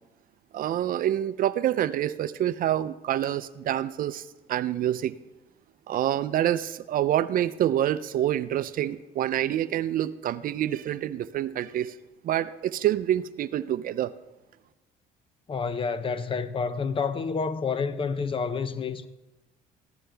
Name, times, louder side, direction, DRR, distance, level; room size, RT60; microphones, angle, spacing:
voice 1, 0.5-5.2 5.9-11.9 12.2-14.1, right 11 dB, 55° right, 0.5 m, -27 dB
voice 2, 15.5-19.1, left 5 dB, 30° left, 0.7 m, -29 dB
15.5 x 12.0 x 3.4 m
cardioid pair, 110°, 17 cm